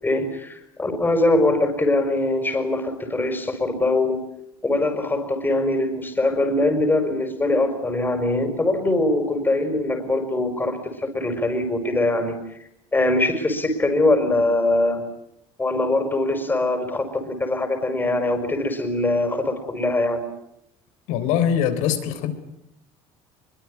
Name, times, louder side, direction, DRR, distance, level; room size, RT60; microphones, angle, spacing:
voice 1, 0.0-4.2 4.6-12.4 12.9-15.0 15.6-20.2, left 2 dB, 15° left, 7 dB, 5.5 m, -22 dB
voice 2, 21.1-22.4, left 9 dB, 75° left, 10 dB, 3.8 m, -22 dB
23.0 x 23.0 x 9.8 m, 0.79 s
supercardioid pair, 100°, 13 cm